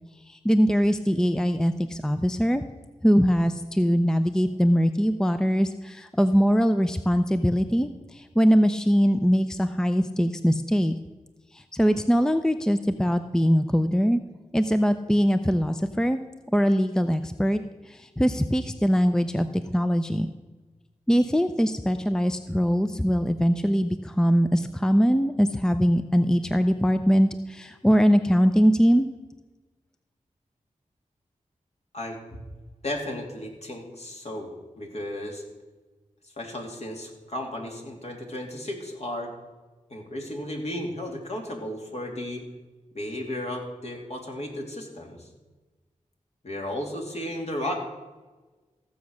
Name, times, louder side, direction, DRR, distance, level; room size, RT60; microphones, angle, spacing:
voice 1, 0.3-2.6 3.0-10.9 11.5-14.2 14.5-16.2 16.5-20.3 21.1-29.1, equal, 5° left, 10 dB, 0.6 m, -22 dB
voice 2, 31.9-32.4 32.8-35.4 36.4-39.3 39.9-42.4 42.9-45.3 46.4-47.7, left 1 dB, 55° left, 1 dB, 2.7 m, -34 dB
15.0 x 7.1 x 6.4 m, 1.2 s
cardioid pair, 55°, 13 cm